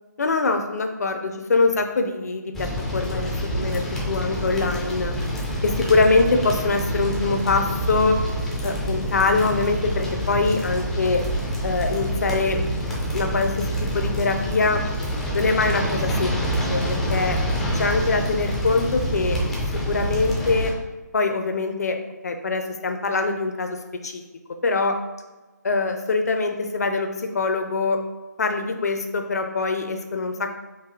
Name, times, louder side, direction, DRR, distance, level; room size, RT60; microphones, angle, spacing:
voice 1, 0.2-5.1 5.6-8.2 8.6-11.2 11.6-12.6 13.1-14.8 15.3-16.4 16.7-17.4 17.7-19.4 19.9-20.7 21.1-22.0 22.2-23.8 24.0-24.2 24.6-25.0 25.6-28.0 28.4-30.6, left 3 dB, 60° left, 6 dB, 0.5 m, -23 dB
sound 1, 2.5-20.7, equal, 5° left, 0.4 m, -27 dB
4.6 x 2.6 x 3.7 m, 1.2 s
figure-of-eight pair, 145°, 10 cm